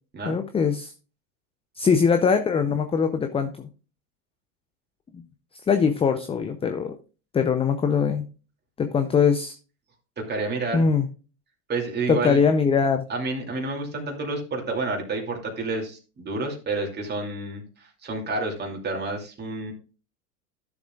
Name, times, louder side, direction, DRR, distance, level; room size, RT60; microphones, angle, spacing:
voice 1, 0.3-0.9 1.8-3.7 5.1-5.2 5.7-7.0 7.3-8.3 8.8-9.6 10.7-11.1 12.1-13.1, left 6 dB, 15° left, 8 dB, 0.5 m, -22 dB
voice 2, 10.2-10.9 11.7-12.4 13.1-19.7, right 3 dB, 20° right, 0 dB, 2.6 m, -29 dB
12.5 x 7.1 x 2.4 m, 0.34 s
hypercardioid pair, 95°, 45 cm